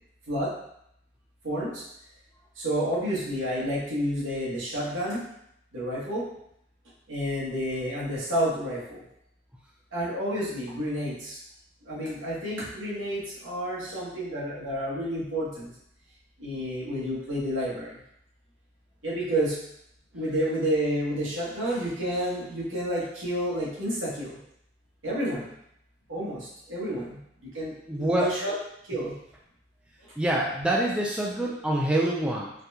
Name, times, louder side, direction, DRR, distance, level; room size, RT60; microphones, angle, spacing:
voice 1, 1.4-1.8 2.6-5.3 5.7-6.2 7.1-9.0 9.9-11.4 11.8-15.7 16.4-18.0 19.0-19.5 20.1-24.4 25.0-25.5 26.1-27.2 27.5-28.5 28.9-29.1, equal, 80° right, -8 dB, 1.4 m, -30 dB
voice 2, 27.9-28.3 30.2-32.5, right 1 dB, 5° right, -3 dB, 0.3 m, -26 dB
3.9 x 2.3 x 2.7 m, 0.74 s
head